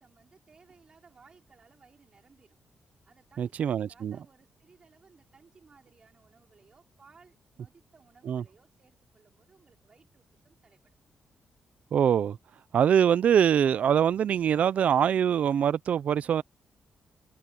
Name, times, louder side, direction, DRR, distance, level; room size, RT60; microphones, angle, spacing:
voice 1, 0.0-2.6 3.1-10.9, right 5 dB, 35° right, 4.5 m, -60 dB
voice 2, 3.4-4.2 8.3-8.4 11.9-12.4 12.7-16.4, right 8 dB, 55° right, 0.5 m, -23 dB
wide cardioid pair, 160°, 3 cm